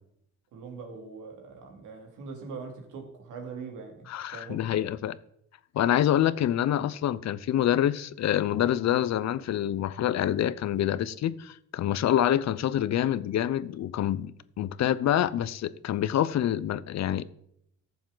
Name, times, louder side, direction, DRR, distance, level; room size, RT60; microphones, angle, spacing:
voice 1, 0.5-4.8, right 4 dB, 90° right, 2.5 m, -42 dB
voice 2, 4.1-5.2 5.7-17.2, left 11 dB, 60° left, 0.7 m, -26 dB
13.0 x 7.2 x 3.9 m
cardioid pair, 90°, 30 cm